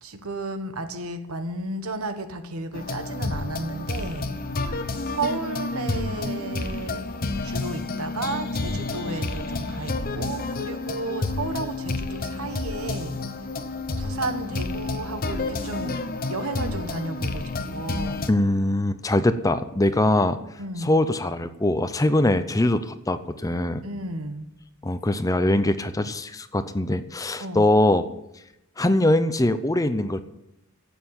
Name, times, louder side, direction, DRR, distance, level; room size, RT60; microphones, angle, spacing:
voice 1, 0.0-4.3 5.1-7.0 7.4-13.2 14.0-16.0 16.3-18.3 20.6-21.0 23.8-24.5 27.4-27.7, right 2 dB, 80° right, 8 dB, 1.4 m, -33 dB
sound 1, 2.7-18.3, left 3 dB, 40° left, 0.9 m, -30 dB
voice 2, 18.3-20.4 20.8-23.8 24.8-28.0 28.8-30.2, left 1 dB, 15° left, 11 dB, 0.6 m, -22 dB
11.5 x 8.4 x 8.9 m, 0.87 s
head